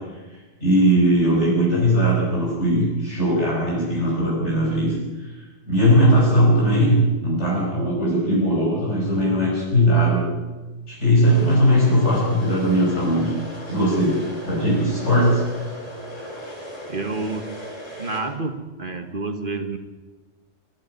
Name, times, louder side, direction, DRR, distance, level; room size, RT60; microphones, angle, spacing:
voice 1, 0.6-4.9 5.7-10.3 10.9-13.3 13.7-14.2 14.5-15.4, equal, 70° left, -4 dB, 5.9 m, -19 dB
sound 1, 11.2-18.2, equal, 30° left, 7.1 m, -38 dB
voice 2, 16.9-17.6 18.0-19.8, right 3 dB, 45° right, 7 dB, 1.7 m, -29 dB
23.0 x 12.0 x 9.4 m, 1.2 s
omnidirectional pair, 1.2 m